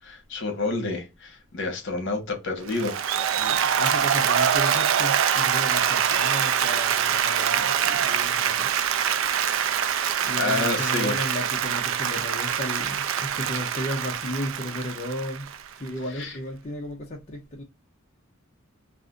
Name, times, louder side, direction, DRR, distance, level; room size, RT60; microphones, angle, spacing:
voice 1, 0.0-3.0 10.3-11.1 16.2-16.3, left 3 dB, 60° left, 0.9 m, -29 dB
Applause, 2.7-15.9, right 8 dB, 65° right, 0.3 m, -24 dB
voice 2, 3.4-8.7 10.2-15.5 15.8-17.6, left 1 dB, 35° left, 0.5 m, -34 dB
2.5 x 2.4 x 3.7 m
head